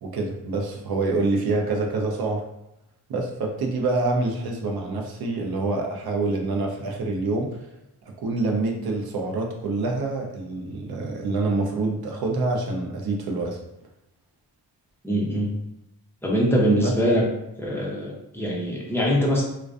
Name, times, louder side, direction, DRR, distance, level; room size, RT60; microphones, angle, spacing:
voice 1, 0.0-2.4 3.1-7.6 8.2-13.6 16.8-16.9, right 3 dB, 65° right, 1 dB, 0.6 m, -26 dB
voice 2, 15.0-15.5 16.2-17.3 17.6-19.4, equal, 5° left, -3 dB, 0.5 m, -23 dB
2.4 x 2.2 x 2.3 m, 0.87 s
wide cardioid pair, 115°, 41 cm